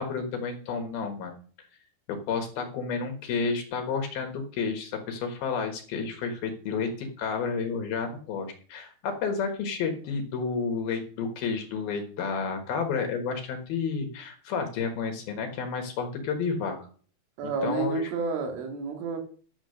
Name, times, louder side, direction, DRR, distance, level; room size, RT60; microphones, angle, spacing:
voice 1, 0.0-1.7 2.1-16.8 17.4-18.1, left 5 dB, 65° left, 5 dB, 2.9 m, -31 dB
voice 2, 17.4-19.2, right 4 dB, 85° right, 3 dB, 4.7 m, -30 dB
11.0 x 7.4 x 6.5 m, 0.43 s
omnidirectional pair, 5.4 m